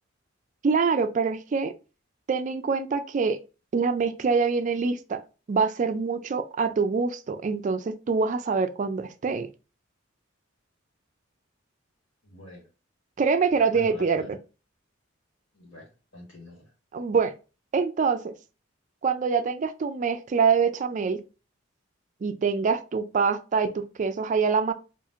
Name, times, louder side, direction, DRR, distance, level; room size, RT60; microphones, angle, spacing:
voice 1, 0.6-1.7 2.3-3.4 3.7-5.2 5.5-9.5 13.2-14.4 16.9-17.3 17.7-18.3 19.0-21.2 22.2-24.7, right 5 dB, 40° right, 0.3 m, -25 dB
voice 2, 12.2-12.6 13.7-14.3 15.5-16.7, left 1 dB, 75° left, 1.4 m, -44 dB
4.4 x 2.4 x 2.4 m
head